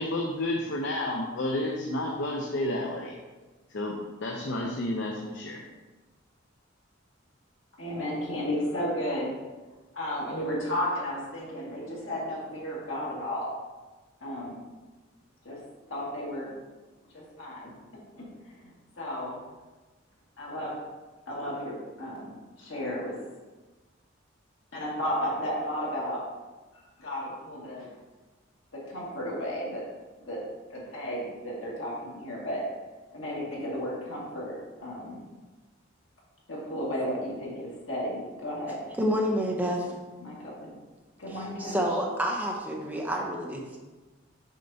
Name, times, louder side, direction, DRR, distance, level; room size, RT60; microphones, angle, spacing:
voice 1, 0.0-3.1 3.7-5.6, left 1 dB, 65° left, 0 dB, 0.6 m, -31 dB
voice 2, 7.8-9.3 9.9-13.5 14.2-14.6 15.4-15.6 15.9-16.5 17.1-17.7 18.2-19.4 20.4-20.8 21.3-22.3 22.6-23.2 24.7-26.2 27.0-27.9 28.7-29.9 30.3-32.7 33.1-35.2 36.5-38.8 39.8-39.9 40.2-40.8 41.2-41.8, equal, 80° left, -5 dB, 2.0 m, -33 dB
voice 3, 39.0-39.9 41.3-43.8, equal, 10° right, -1 dB, 0.7 m, -29 dB
6.3 x 5.7 x 2.8 m, 1.2 s
head